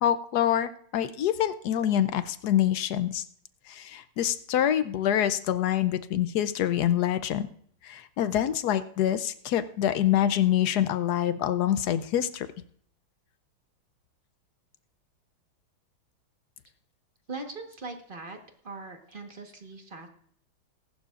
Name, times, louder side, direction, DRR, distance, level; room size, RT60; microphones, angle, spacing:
voice 1, 0.0-3.2 3.7-7.5 7.8-12.5, left 11 dB, 75° left, 12 dB, 0.9 m, -26 dB
voice 2, 17.3-18.4 18.6-20.1, right 3 dB, 30° right, 4 dB, 1.2 m, -40 dB
19.5 x 11.5 x 2.5 m, 0.63 s
omnidirectional pair, 2.3 m